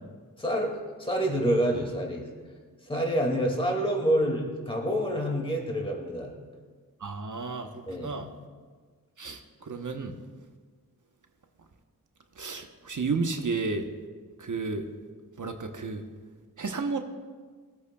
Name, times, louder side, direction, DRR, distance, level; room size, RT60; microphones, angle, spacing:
voice 1, 0.4-2.3 2.8-6.3 7.9-8.2, equal, 15° left, 0 dB, 2.1 m, -27 dB
voice 2, 7.0-8.3 9.2-10.1 12.4-13.9 14.4-14.8 15.4-16.0 16.6-17.0, right 4 dB, 55° right, 5 dB, 1.0 m, -32 dB
19.5 x 8.4 x 2.3 m, 1.5 s
cardioid pair, 40°, 38 cm